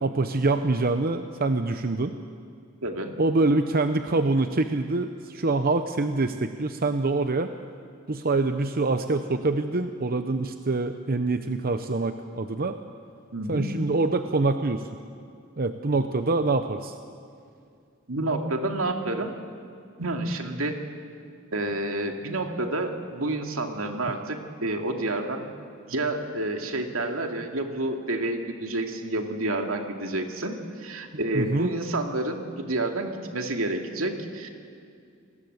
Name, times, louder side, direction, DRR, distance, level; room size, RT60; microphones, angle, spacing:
voice 1, 0.0-2.1 3.2-7.5 8.1-12.8 13.5-14.8 15.6-16.9 31.3-31.7, right 3 dB, 45° right, 8 dB, 0.8 m, -25 dB
voice 2, 2.8-3.2 13.3-13.7 18.1-19.3 20.0-20.8 21.5-25.5 25.9-34.5, right 2 dB, 80° right, 4 dB, 2.5 m, -29 dB
28.0 x 20.0 x 8.1 m, 2.3 s
head